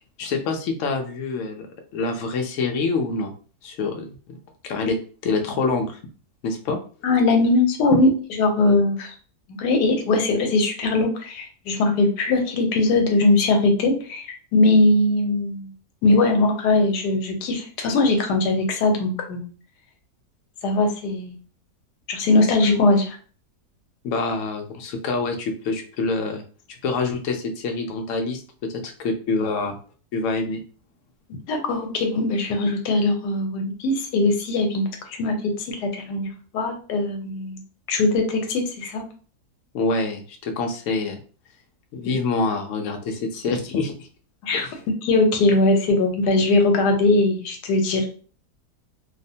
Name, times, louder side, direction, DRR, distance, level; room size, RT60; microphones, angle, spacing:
voice 1, 0.2-1.7 1.9-3.3 3.6-4.4 4.6-5.0 5.2-6.0 6.4-6.8 24.0-26.4 26.8-29.8 30.1-30.6 39.7-41.2 41.9-44.1 44.5-44.7, left 3 dB, 70° left, 3 dB, 0.8 m, -26 dB
voice 2, 7.0-8.1 8.4-9.1 9.6-14.3 14.5-15.7 16.0-19.5 20.6-21.4 22.1-23.2 31.5-36.3 36.5-37.6 37.9-39.0 44.4-44.7 45.0-48.1, left 2 dB, 90° left, 4 dB, 1.2 m, -20 dB
2.8 x 2.0 x 2.6 m, 0.40 s
omnidirectional pair, 1.7 m